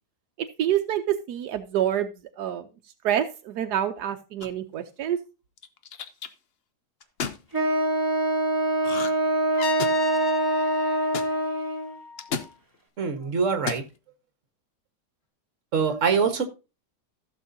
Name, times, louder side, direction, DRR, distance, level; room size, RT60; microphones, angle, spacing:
voice 1, 0.4-2.7 3.0-5.2, right 10 dB, 80° right, 7 dB, 1.3 m, -27 dB
sound 1, 4.4-4.8 5.6-6.3 7.0-7.4 8.8-9.3 9.5-10.2 11.1-11.3 12.2-12.5 13.5-13.9, left 6 dB, 50° left, 0.8 m, -32 dB
Wind instrument woodwind instrument, 7.5-12.0, right 2 dB, 10° right, 2.5 m, -24 dB
Trumpet, 9.6-12.5, left 6 dB, 65° left, 1.6 m, -33 dB
voice 2, 13.0-13.8 15.7-16.5, right 6 dB, 50° right, 8 dB, 1.7 m, -24 dB
15.0 x 6.9 x 2.7 m, 0.30 s
omnidirectional pair, 1.7 m